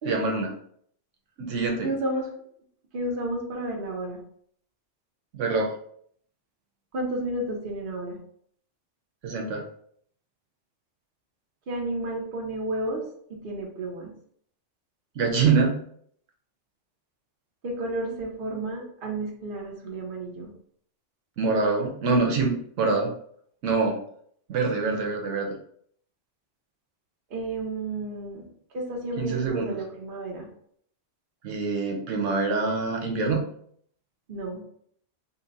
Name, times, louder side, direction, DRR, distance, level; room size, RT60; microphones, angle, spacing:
voice 1, 0.0-0.5 1.4-1.9 5.3-5.7 9.2-9.6 15.2-15.7 21.4-23.1 23.6-24.0 24.5-25.5 29.2-29.8 31.4-33.5, right 4 dB, 85° right, 1 dB, 1.1 m, -25 dB
voice 2, 1.8-2.3 2.9-4.2 6.9-8.2 11.7-13.0 13.3-14.1 17.6-20.5 24.8-25.2 27.3-28.5 28.7-30.5 34.3-34.6, right 2 dB, 50° right, -1 dB, 1.0 m, -32 dB
4.2 x 2.1 x 3.9 m, 0.63 s
omnidirectional pair, 1.2 m